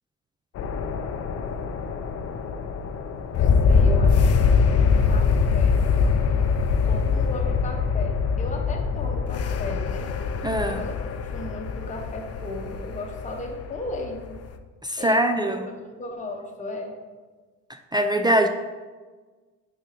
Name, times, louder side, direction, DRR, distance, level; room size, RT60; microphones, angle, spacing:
sound 1, 0.6-14.5, left 5 dB, 55° left, 0.5 m, -23 dB
voice 1, 3.4-5.8 6.8-10.1 10.7-14.4 15.0-17.0, left 2 dB, 25° left, 1 dB, 1.0 m, -36 dB
voice 2, 10.4-10.8 14.8-15.6 17.7-18.5, right 1 dB, 15° right, 6 dB, 0.3 m, -22 dB
5.3 x 3.8 x 4.9 m, 1.4 s
cardioid pair, 90°, 30 cm